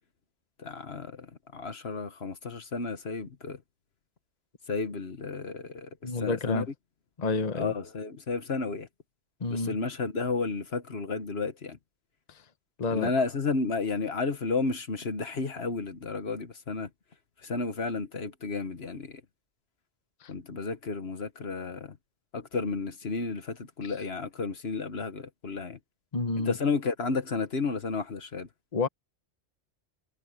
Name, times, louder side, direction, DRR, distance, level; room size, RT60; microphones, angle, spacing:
voice 1, 0.6-1.3 1.5-3.6 4.7-6.7 7.5-8.9 9.5-11.8 12.9-16.9 17.4-19.2 20.3-22.0 22.3-25.8 26.4-28.5, left 4 dB, 60° left, 1.6 m, -32 dB
voice 2, 6.0-6.7 7.2-7.7 9.4-9.8 12.8-13.1 20.2-20.3 26.1-26.5 28.7-28.9, left 3 dB, 35° left, 1.2 m, -29 dB
omnidirectional pair, 1.2 m